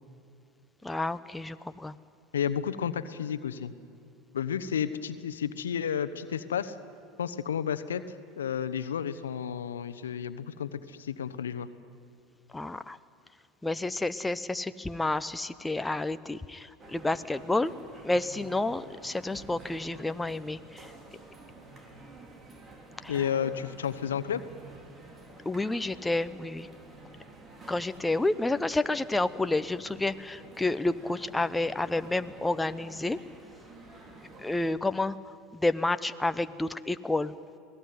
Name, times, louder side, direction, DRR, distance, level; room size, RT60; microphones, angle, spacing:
voice 1, 0.8-2.0 12.5-13.0 13.6-17.7 18.0-20.9 23.0-23.2 25.4-26.7 27.7-33.2 34.4-35.2 35.5-37.3, left 2 dB, 10° left, 12 dB, 0.9 m, -30 dB
voice 2, 2.3-3.7 4.3-6.7 7.2-11.7 23.1-24.4, left 8 dB, 90° left, 11 dB, 1.0 m, -32 dB
sound 1, 16.8-34.7, right 2 dB, 30° right, 4.5 m, -49 dB
27.0 x 18.5 x 9.6 m, 2.5 s
hypercardioid pair, 85°, 0 cm